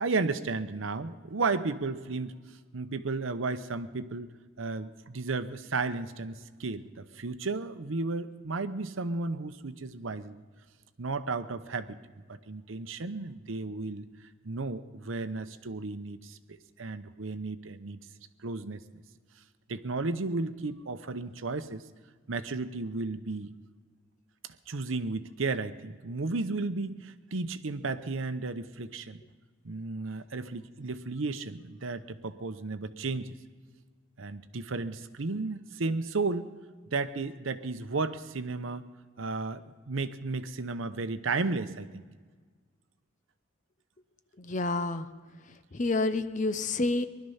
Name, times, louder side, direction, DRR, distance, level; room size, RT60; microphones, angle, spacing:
voice 1, 0.0-2.3 2.7-4.3 4.6-10.4 11.0-12.0 12.3-14.1 14.4-18.0 18.4-18.8 19.7-21.8 22.3-23.5 24.7-29.2 29.6-33.4 34.2-36.5 36.9-38.9 39.2-42.0, right 3 dB, 75° right, 11 dB, 0.8 m, -33 dB
voice 2, 44.4-45.1 45.7-47.1, left 2 dB, 40° left, 12 dB, 0.6 m, -28 dB
20.0 x 12.0 x 5.6 m, 1.5 s
head